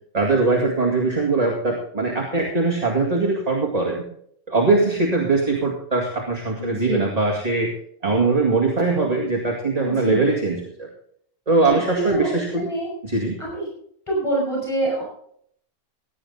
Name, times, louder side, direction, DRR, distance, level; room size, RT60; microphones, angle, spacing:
voice 1, 0.1-4.0 4.5-7.7 8.0-10.9 11.5-12.7 13.0-13.4, right 3 dB, 25° right, -1 dB, 2.4 m, -21 dB
voice 2, 6.6-7.1 9.8-10.2 11.7-11.8 12.1-12.9 13.4-13.7 14.1-15.0, right 1 dB, 20° left, -4 dB, 6.3 m, -26 dB
16.5 x 10.0 x 4.1 m, 0.65 s
omnidirectional pair, 1.6 m